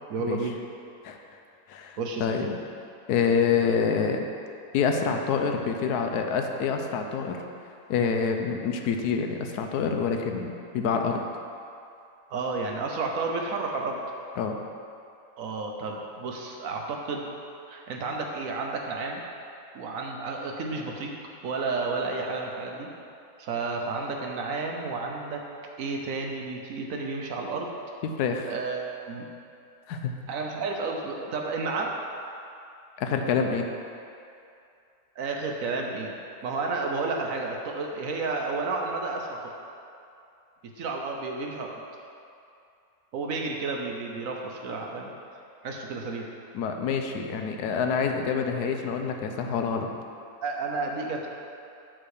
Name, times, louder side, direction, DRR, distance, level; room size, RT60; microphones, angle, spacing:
voice 1, 0.1-0.6 2.0-2.3 8.4-8.5 12.3-14.0 15.4-17.3 17.7-19.2 19.7-21.1 21.4-22.9 23.4-25.4 25.8-27.7 28.5-29.3 30.3-32.0 35.2-36.2 36.4-39.5 40.8-41.8 43.1-45.1 45.6-46.3 50.4-51.3, right 3 dB, 65° right, 1 dB, 1.1 m, -31 dB
voice 2, 1.7-2.5 3.1-4.2 4.7-7.4 7.9-11.2 14.4-14.6 28.0-28.5 29.9-30.1 33.0-33.7 46.5-49.9, left 6 dB, 85° left, 4 dB, 1.2 m, -27 dB
7.9 x 3.7 x 6.4 m, 2.6 s
omnidirectional pair, 1.6 m